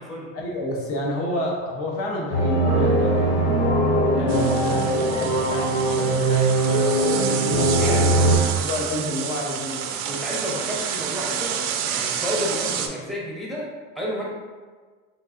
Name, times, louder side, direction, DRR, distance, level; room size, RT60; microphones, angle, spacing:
voice 1, 0.3-3.4 4.1-8.3 8.5-9.9, left 1 dB, 50° left, -1 dB, 0.7 m, -30 dB
sound 1, 2.3-8.4, right 1 dB, 80° left, 1.1 m, -20 dB
sound 2, 4.3-12.9, right 8 dB, 60° right, 0.4 m, -29 dB
voice 2, 10.0-11.6 11.9-13.7 13.9-14.3, equal, ahead, -5 dB, 0.6 m, -30 dB
3.7 x 2.7 x 2.4 m, 1.4 s
supercardioid pair, 115°, 30 cm